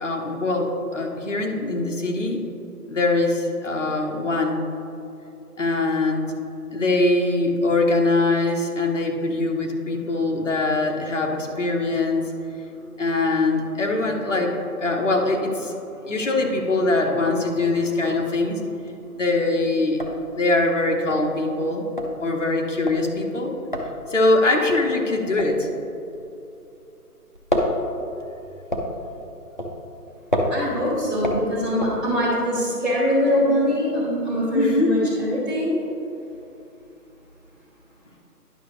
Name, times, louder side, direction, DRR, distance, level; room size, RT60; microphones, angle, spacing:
voice 1, 0.0-2.4 2.9-4.6 5.6-6.3 6.7-12.3 13.0-15.8 16.1-18.6 19.1-20.0 20.3-21.8 22.2-23.5 24.1-25.7 34.5-35.1, left 2 dB, 50° left, 1 dB, 1.2 m, -22 dB
sound 1, 18.8-19.1 19.5-19.6 19.8-26.9 27.2-32.5, equal, 35° left, 0.5 m, -29 dB
voice 2, 30.5-35.8, equal, ahead, -19 dB, 1.4 m, -23 dB
10.5 x 5.8 x 3.2 m, 2.9 s
figure-of-eight pair, 160°, 47 cm